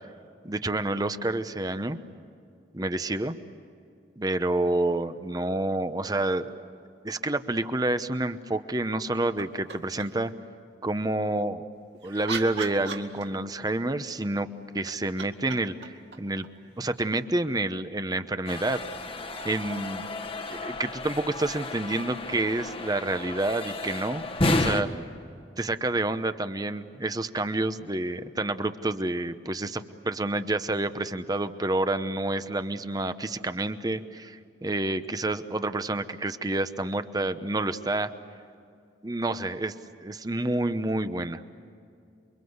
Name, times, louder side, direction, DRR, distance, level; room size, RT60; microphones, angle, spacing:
voice 1, 0.4-2.0 2.7-3.3 4.2-6.5 7.0-10.3 10.8-11.7 12.0-14.5 14.7-16.5 16.8-18.8 19.4-20.0 20.5-24.2 24.6-24.9 25.6-38.1 39.0-39.7 40.0-41.5, right 2 dB, 20° right, 10 dB, 0.9 m, -28 dB
sound 1, 9.4-10.3 11.7-13.6 14.7-17.3 19.3-19.4, right 5 dB, 75° right, 2.2 m, -40 dB
sound 2, 18.5-24.8, left 2 dB, 30° left, 1.3 m, -31 dB
29.0 x 23.5 x 8.0 m, 2.4 s
head